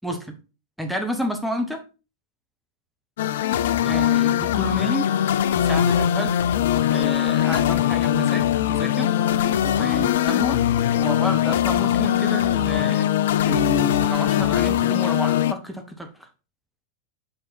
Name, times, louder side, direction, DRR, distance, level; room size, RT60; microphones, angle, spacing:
voice 1, 0.0-0.4 0.8-1.8 3.8-5.1 5.5-6.4 6.9-9.1 9.6-10.6 10.9-13.1 13.4-16.1, equal, ahead, 1.1 m, -30 dB
sound 1, 3.2-15.5, left 11 dB, 55° left, 0.4 m, -21 dB
5.7 x 5.3 x 4.2 m
figure-of-eight pair, 90°, 0 cm